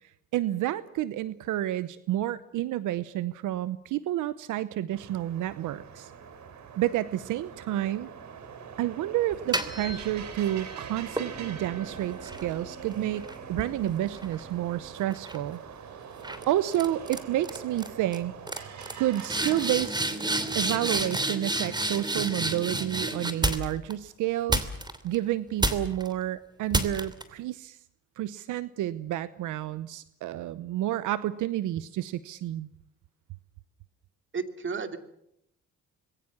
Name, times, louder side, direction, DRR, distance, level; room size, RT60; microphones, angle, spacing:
voice 1, 0.3-6.1 6.8-8.1 8.8-15.6 16.5-18.3 19.0-19.9 20.5-24.6 25.0-27.8 28.2-32.7, right 13 dB, 85° right, 15 dB, 0.9 m, -30 dB
sound 1, 4.9-19.7, right 7 dB, 65° right, 3.5 m, -43 dB
sound 2, 9.3-10.5 11.2-14.7 15.1-15.5 16.2-16.4 16.7-17.2 17.4-17.9 18.1-18.2 18.5-23.9 24.5-25.2 25.6-26.1 26.7-27.2, right 2 dB, 15° right, 2.9 m, -31 dB
voice 2, 34.3-35.0, right 5 dB, 40° right, 8 dB, 2.7 m, -32 dB
26.0 x 22.0 x 7.3 m, 0.77 s
cardioid pair, 90°, 30 cm